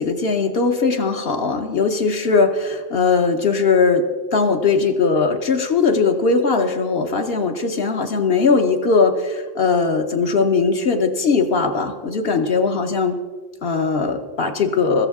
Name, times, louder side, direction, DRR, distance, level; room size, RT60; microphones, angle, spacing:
voice 1, 0.0-4.0 4.3-13.2 13.6-15.1, left 4 dB, 65° left, 4 dB, 1.0 m, -19 dB
16.0 x 14.0 x 3.5 m, 1.5 s
omnidirectional pair, 1.1 m